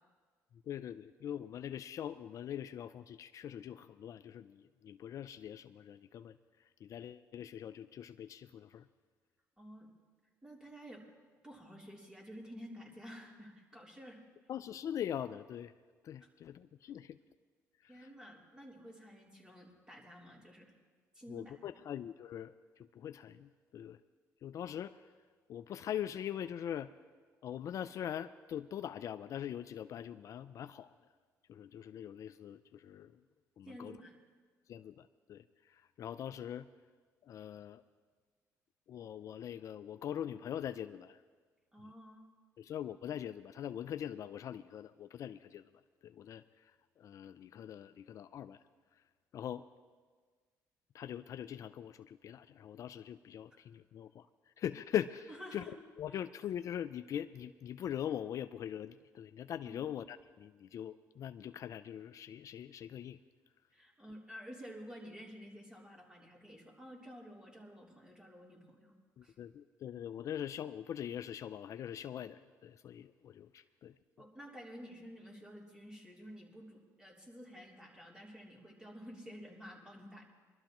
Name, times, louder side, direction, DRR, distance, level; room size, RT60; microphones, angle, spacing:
voice 1, 0.7-6.4 6.8-8.8 14.5-15.7 16.0-17.2 17.8-18.1 21.3-24.0 24.4-25.0 25.5-26.9 27.4-30.9 31.5-33.2 33.6-34.0 34.7-36.7 37.2-37.8 38.9-41.2 42.6-45.7 46.0-46.4 47.0-48.6 49.3-49.7 50.9-54.3 54.6-63.2 69.2-74.0, left 10 dB, 55° left, 12 dB, 0.4 m, -42 dB
voice 2, 9.6-9.9 10.4-11.0 11.4-14.2 16.2-16.3 17.9-20.7 21.1-21.6 33.6-34.2 41.7-42.2 53.5-53.6 55.3-55.8 56.1-56.2 59.6-59.9 63.7-68.9 69.2-69.3 74.2-80.3, equal, 10° right, -3 dB, 3.2 m, -51 dB
22.5 x 12.5 x 3.0 m, 1.5 s
cardioid pair, 85°, 7 cm